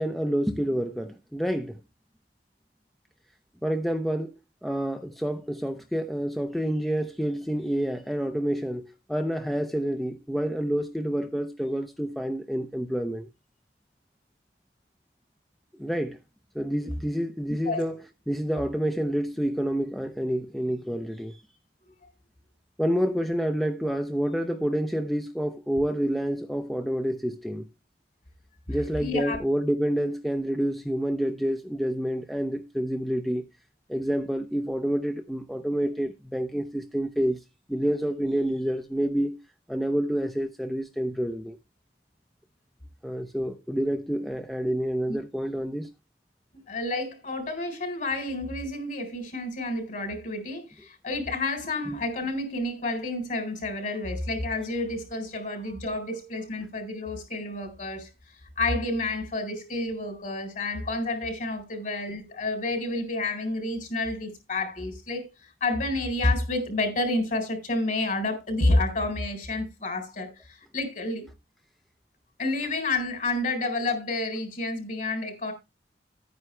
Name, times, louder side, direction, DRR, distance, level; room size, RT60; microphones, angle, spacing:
voice 1, 0.0-1.8 3.6-13.3 15.8-16.2 16.5-18.0 18.3-21.4 22.8-27.7 28.7-33.5 33.9-37.4 37.7-39.4 39.7-41.6 43.0-45.9, equal, ahead, 0.6 m, -28 dB
voice 2, 29.0-29.4 45.1-45.2 46.7-58.1 58.6-71.3 72.4-75.5, left 2 dB, 45° left, 4.1 m, -29 dB
11.0 x 9.4 x 3.3 m
head